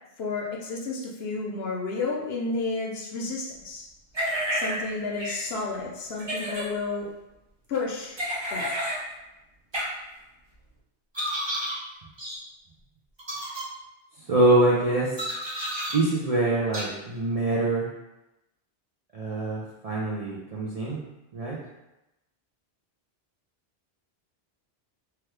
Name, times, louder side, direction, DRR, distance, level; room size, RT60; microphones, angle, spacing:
voice 1, 0.2-3.9 4.5-7.1 7.7-8.2 8.5-9.0, left 3 dB, 70° left, -1 dB, 0.8 m, -31 dB
sound 1, 4.1-4.8 5.2-5.4 6.2-6.6 8.2-9.0 9.7-9.8 11.1-11.8 12.2-12.4 13.2-13.6 15.2-15.9 16.7-16.8, equal, 30° right, 0.7 m, -30 dB
voice 2, 14.3-15.1 15.9-17.9 19.1-21.0 21.3-21.6, right 2 dB, 60° right, -5 dB, 0.4 m, -24 dB
2.9 x 2.2 x 3.2 m, 0.96 s
omnidirectional pair, 1.1 m